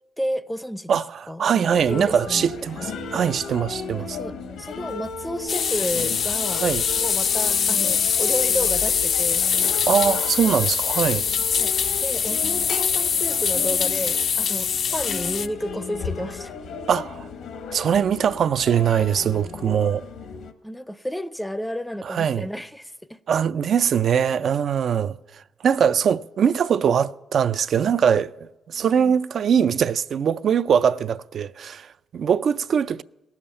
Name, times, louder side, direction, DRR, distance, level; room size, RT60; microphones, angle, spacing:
voice 1, 0.2-1.0 1.3-2.5 3.9-6.7 7.0-9.4 11.5-11.7 12.0-16.5 20.6-23.2 28.7-29.1, equal, 5° left, 0.5 m, -31 dB
voice 2, 0.9-4.2 6.6-6.8 9.9-11.2 16.9-17.3 17.7-20.0 22.1-22.5 23.3-33.0, right 7 dB, 60° right, 0.4 m, -22 dB
sound 1, 1.7-20.5, left 5 dB, 75° left, 1.0 m, -36 dB
sound 2, 5.5-15.5, left 7 dB, 60° left, 0.4 m, -23 dB
17.5 x 7.2 x 8.8 m
cardioid pair, 90°, 0 cm